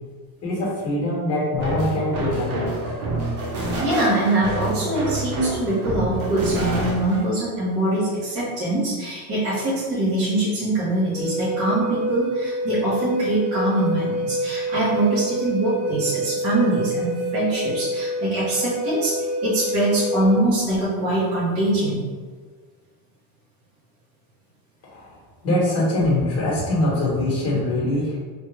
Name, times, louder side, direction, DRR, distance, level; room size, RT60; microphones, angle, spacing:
voice 1, 0.4-2.7 24.8-25.2 25.4-28.2, left 1 dB, 35° left, -5 dB, 1.3 m, -23 dB
sound 1, 1.6-7.2, right 2 dB, 50° right, 0.9 m, -27 dB
voice 2, 3.8-19.1 19.4-22.0, right 1 dB, 30° right, -11 dB, 1.3 m, -23 dB
Wind instrument woodwind instrument, 11.1-20.4, right 1 dB, ahead, 0.6 m, -27 dB
3.2 x 2.4 x 3.2 m, 1.5 s
cardioid pair, 145°, 44 cm